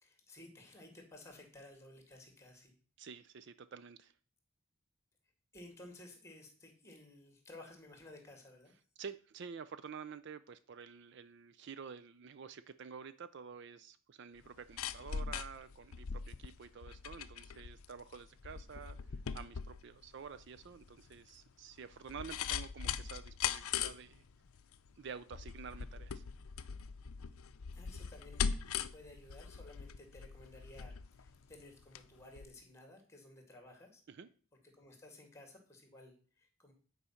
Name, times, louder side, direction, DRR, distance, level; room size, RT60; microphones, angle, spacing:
voice 1, 0.0-2.7 5.5-8.7 27.7-34.0 34.7-36.7, left 1 dB, 15° left, 4 dB, 1.9 m, -56 dB
voice 2, 3.0-4.2 9.0-24.2 25.0-26.2 34.1-34.3, right 6 dB, 55° right, 13 dB, 0.4 m, -49 dB
sound 1, 14.4-32.1 32.4-32.5, left 7 dB, 80° left, 0.5 m, -41 dB
9.7 x 4.8 x 5.6 m, 0.42 s
head